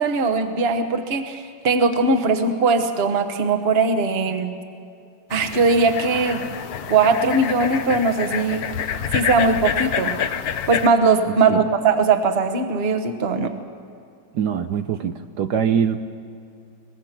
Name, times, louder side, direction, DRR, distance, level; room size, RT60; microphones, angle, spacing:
voice 1, 0.0-4.5 5.3-6.4 6.9-8.6 9.1-10.2 10.7-13.5, right 4 dB, 35° right, 7 dB, 1.3 m, -20 dB
sound 1, 5.3-10.9, left 8 dB, 60° left, 1.2 m, -27 dB
voice 2, 14.3-16.0, right 8 dB, 70° right, 8 dB, 1.2 m, -23 dB
23.0 x 20.5 x 6.0 m, 2.5 s
omnidirectional pair, 2.1 m